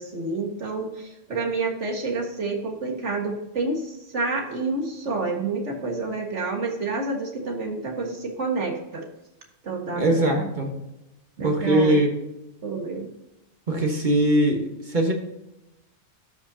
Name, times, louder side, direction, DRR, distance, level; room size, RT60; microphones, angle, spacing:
voice 1, 0.0-9.0 9.6-10.5 11.4-12.0 12.6-13.1, right 3 dB, 85° right, 2 dB, 2.0 m, -29 dB
voice 2, 9.9-10.7 11.4-12.1 13.7-15.1, right 1 dB, 45° right, 2 dB, 1.4 m, -21 dB
13.0 x 5.7 x 2.7 m, 0.91 s
omnidirectional pair, 1.2 m